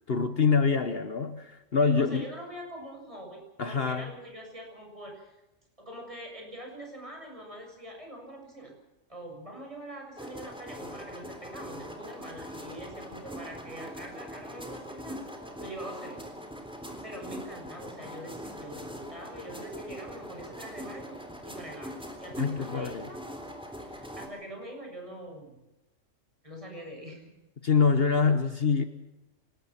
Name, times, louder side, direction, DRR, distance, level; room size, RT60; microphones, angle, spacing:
voice 1, 0.1-2.2 3.6-4.1 22.4-23.1 27.6-28.8, left 5 dB, 50° left, 9 dB, 1.3 m, -25 dB
voice 2, 1.8-5.4 5.8-8.7 9.1-15.2 15.6-16.3 17.0-21.2 21.4-23.2 23.8-25.6 26.4-27.3, right 1 dB, 25° right, 1 dB, 6.8 m, -44 dB
sound 1, 10.2-24.3, equal, 5° right, 3.6 m, -42 dB
25.5 x 20.0 x 5.9 m, 1.0 s
omnidirectional pair, 1.3 m